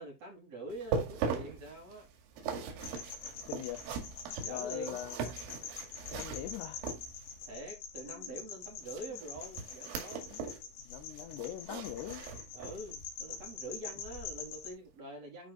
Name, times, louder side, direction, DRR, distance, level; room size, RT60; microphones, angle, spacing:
voice 1, 0.0-2.1 4.4-5.0 7.4-10.2 12.5-15.5, right 2 dB, 35° right, 4.4 m, -45 dB
sound 1, 0.7-7.4 8.8-10.7 10.9-12.9 13.3-13.5 14.0-14.1, right 5 dB, 85° right, 4.6 m, -40 dB
sound 2, 2.8-14.7, left 6 dB, 65° left, 4.4 m, -45 dB
voice 2, 3.5-3.8 4.5-5.2 6.1-6.9 8.1-8.4 10.3-10.5 10.9-12.3, left 12 dB, 85° left, 2.3 m, -42 dB
12.5 x 5.2 x 2.5 m
omnidirectional pair, 5.8 m